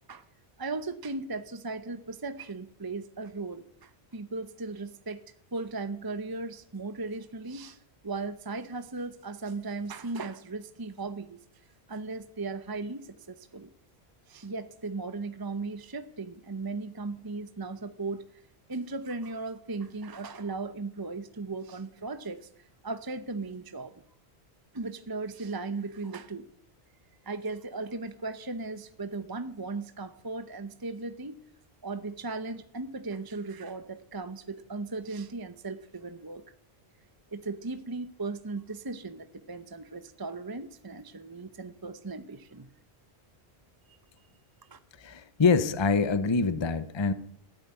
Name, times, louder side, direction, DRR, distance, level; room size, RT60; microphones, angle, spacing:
voice 1, 0.6-5.2 5.5-7.8 8.0-11.4 11.9-13.7 14.3-18.2 18.7-22.5 22.8-23.9 24.7-26.5 27.2-31.4 31.8-36.4 37.3-42.7 44.7-44.8, right 3 dB, 25° right, 11 dB, 0.8 m, -37 dB
voice 2, 45.0-47.1, left 4 dB, 30° left, 13 dB, 0.8 m, -25 dB
14.5 x 9.2 x 9.7 m, 0.65 s
omnidirectional pair, 1.1 m